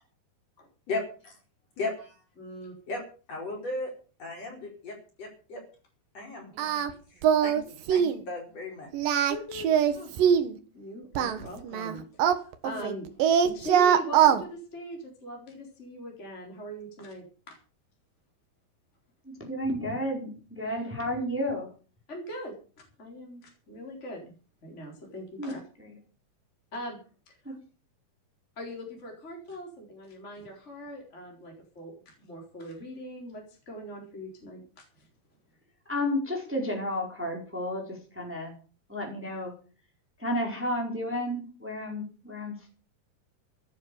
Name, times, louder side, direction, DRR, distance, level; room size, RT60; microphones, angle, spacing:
voice 1, 0.9-1.3 1.8-2.1 2.9-3.0 3.3-3.9 4.2-5.6 6.1-6.5 7.1-8.9 9.3-9.7, left 2 dB, 40° left, 1 dB, 5.5 m, -36 dB
voice 2, 2.4-2.7 9.9-10.1 10.7-13.1 13.4-17.6 22.1-22.5 23.0-24.3 24.6-25.6 26.7-27.0 27.3-27.5 28.6-35.0, equal, 15° left, 0 dB, 4.3 m, -41 dB
Singing, 6.6-6.9 7.2-7.6 7.9-8.2 8.9-10.5 11.2-12.9 13.2-14.4, right 9 dB, 65° right, 2.9 m, -22 dB
voice 3, 19.2-21.7 25.4-25.5 25.8-26.0 27.4-27.5 35.9-38.5 38.9-39.5 40.2-42.7, left 1 dB, 5° right, 1 dB, 4.2 m, -32 dB
15.0 x 11.0 x 6.9 m, 0.39 s
omnidirectional pair, 4.5 m